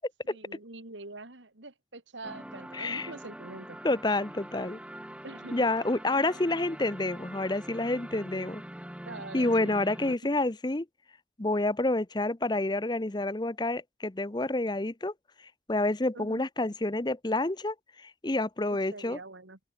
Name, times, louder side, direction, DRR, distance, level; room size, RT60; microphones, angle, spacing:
voice 1, 0.3-3.8 5.2-5.7 9.0-9.8 16.1-16.5 18.9-19.6, right 2 dB, 85° right, 3.2 m, -44 dB
sound 1, 2.2-10.2, right 1 dB, 5° right, 2.0 m, -44 dB
voice 2, 2.7-3.1 3.8-4.8 5.5-8.6 9.3-10.9 11.4-15.1 15.7-19.2, left 2 dB, 25° left, 0.7 m, -28 dB
open air
head